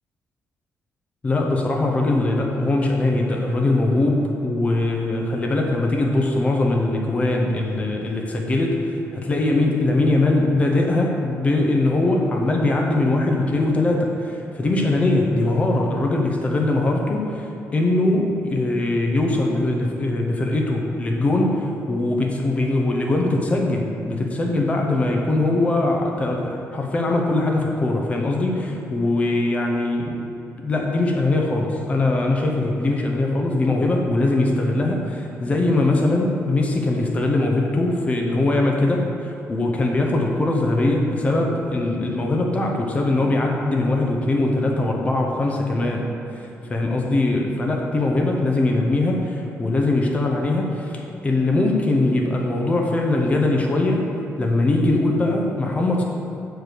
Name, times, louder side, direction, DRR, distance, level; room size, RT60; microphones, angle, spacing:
voice 1, 1.2-30.2 30.6-46.1 46.3-54.1 54.4-56.0, left 2 dB, 25° left, 0 dB, 0.7 m, -21 dB
6.7 x 4.6 x 6.6 m, 2.6 s
cardioid pair, 170°, 5 cm